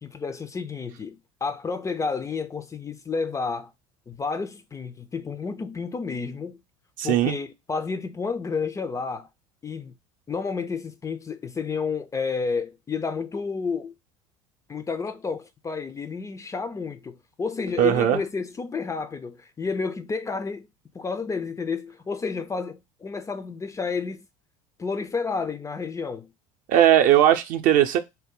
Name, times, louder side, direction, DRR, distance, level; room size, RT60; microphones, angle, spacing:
voice 1, 0.0-3.7 4.1-6.6 7.0-9.3 9.6-9.9 10.3-13.9 14.7-20.7 20.9-24.3 24.8-26.3, left 4 dB, 20° left, 0.4 m, -30 dB
voice 2, 7.0-7.4 17.8-18.2 26.7-28.0, right 11 dB, 55° right, 0.5 m, -18 dB
2.7 x 2.1 x 3.7 m
hypercardioid pair, 75°, 17 cm